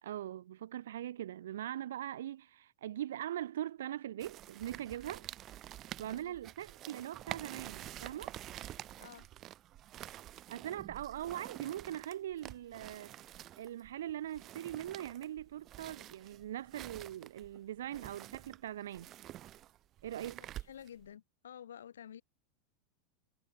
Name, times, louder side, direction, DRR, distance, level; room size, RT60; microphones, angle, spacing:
voice 1, 0.0-5.3 6.0-8.3 10.5-19.1 20.0-20.4, right 12 dB, 75° right, 0.7 m, -41 dB
sound 1, 4.2-21.1, right 13 dB, 40° right, 3.8 m, -48 dB
voice 2, 9.0-9.3 20.4-22.2, left 9 dB, 85° left, 5.8 m, -51 dB
hypercardioid pair, 95°, 0 cm